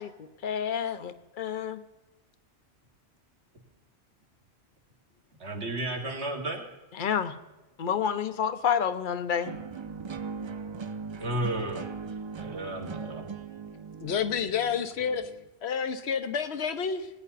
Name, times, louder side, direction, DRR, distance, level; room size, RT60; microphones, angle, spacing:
voice 1, 0.0-1.8 7.0-7.4 7.8-9.6, left 8 dB, 50° left, 11 dB, 0.9 m, -29 dB
voice 2, 5.4-6.7 11.2-11.9 12.4-13.3, right 1 dB, 70° right, 1 dB, 2.4 m, -33 dB
sound 1, 9.4-15.5, right 5 dB, 50° right, 0.3 m, -39 dB
voice 3, 14.0-15.3 15.6-17.1, left 7 dB, 70° left, 11 dB, 1.1 m, -29 dB
18.5 x 9.7 x 4.1 m, 1.1 s
omnidirectional pair, 1.2 m